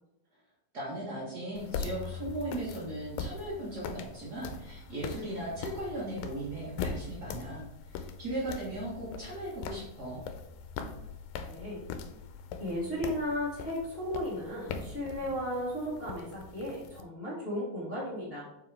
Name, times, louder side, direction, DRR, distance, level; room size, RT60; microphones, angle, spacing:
voice 1, 0.7-10.2, right 1 dB, 65° right, -6 dB, 0.9 m, -38 dB
sound 1, 1.6-17.0, left 5 dB, 85° left, 2.3 m, -41 dB
voice 2, 11.5-11.8 12.6-18.4, equal, 45° left, -7 dB, 0.7 m, -35 dB
7.7 x 4.8 x 3.4 m, 0.86 s
omnidirectional pair, 4.1 m